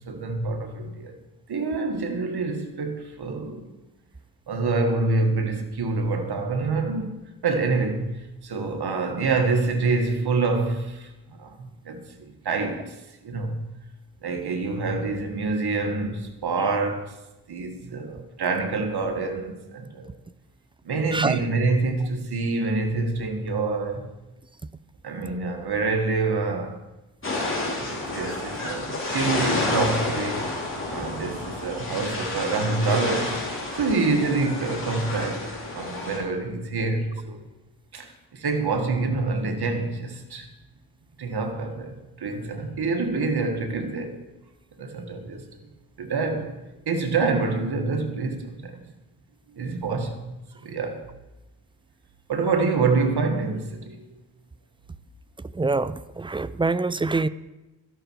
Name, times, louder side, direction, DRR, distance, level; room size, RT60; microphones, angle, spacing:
voice 1, 0.1-1.1 1.5-3.7 4.5-7.1 7.4-12.0 12.5-12.9 13.2-13.7 14.2-17.1 17.5-20.1 20.9-24.1 25.0-26.8 27.8-30.5 30.9-37.4 37.9-40.5 41.2-44.2 44.8-45.5 46.0-46.5 46.9-48.8 49.6-50.2 50.6-51.1 52.3-54.1, right 3 dB, 75° right, 1.8 m, -26 dB
sound 1, 27.2-36.2, left 2 dB, 30° left, 4.7 m, -29 dB
voice 2, 55.5-57.3, right 3 dB, 15° right, 0.4 m, -25 dB
13.5 x 11.5 x 4.7 m
cardioid pair, 70°, 39 cm